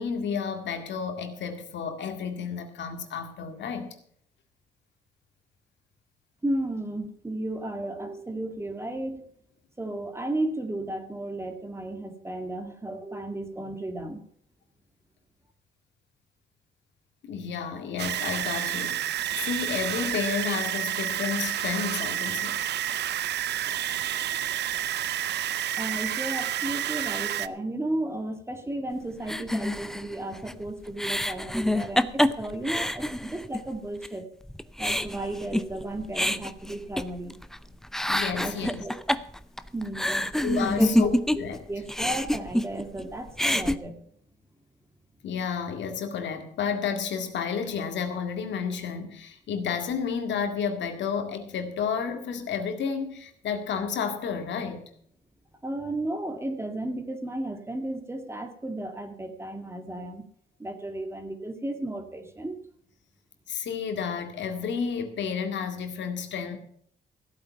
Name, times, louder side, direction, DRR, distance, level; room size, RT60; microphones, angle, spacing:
voice 1, 0.0-3.9 17.2-22.6 38.1-38.8 40.4-41.6 45.2-54.8 63.5-66.6, left 6 dB, 75° left, 2.0 m, -31 dB
voice 2, 6.4-9.2 9.8-14.2 25.8-34.3 34.8-37.4 38.4-38.9 39.7-40.3 40.8-41.1 41.4-44.0 55.6-60.3 60.6-62.6, right 1 dB, 15° right, 2.0 m, -34 dB
sound 1, 18.0-27.5, right 12 dB, 65° right, 0.5 m, -30 dB
sound 2, 29.3-33.7 34.0-34.1 34.5-37.6 37.8-41.6 41.9-43.0 43.3-43.8, left 1 dB, ahead, 0.6 m, -27 dB
15.0 x 8.7 x 5.8 m
cardioid pair, 105°, 19 cm